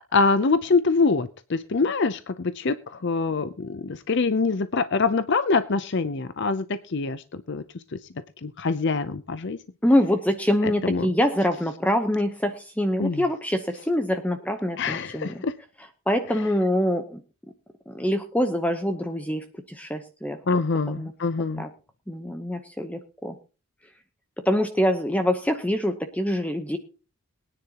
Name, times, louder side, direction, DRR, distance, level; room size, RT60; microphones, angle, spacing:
voice 1, 0.1-7.6 7.9-8.0 8.4-9.6 10.6-11.1 13.0-13.2 14.8-15.5 20.5-21.7, left 4 dB, 50° left, 12 dB, 0.6 m, -24 dB
voice 2, 9.8-15.4 16.1-17.2 17.9-20.4 21.0-21.1 21.6-21.7 22.1-23.4 24.4-26.8, equal, 5° left, 6 dB, 0.9 m, -25 dB
22.5 x 9.9 x 2.9 m, 0.34 s
head